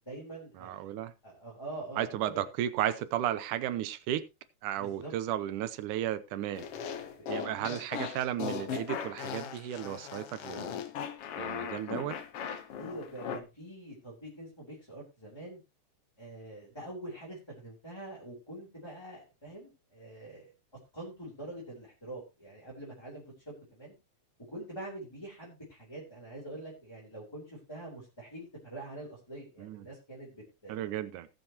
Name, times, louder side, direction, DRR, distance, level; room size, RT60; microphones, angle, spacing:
voice 1, 0.0-0.9 1.2-2.4 4.8-5.1 7.2-7.8 12.8-15.6 16.2-20.5 20.9-23.9 24.5-30.9, right 1 dB, 10° left, 3.5 m, -45 dB
voice 2, 0.6-1.1 2.0-4.2 4.6-6.7 7.3-10.8 11.4-12.2 29.6-29.9 30.7-31.3, right 12 dB, 80° right, 2.3 m, -34 dB
sound 1, 6.5-13.4, left 8 dB, 65° left, 1.6 m, -38 dB
19.0 x 7.3 x 2.9 m
omnidirectional pair, 3.7 m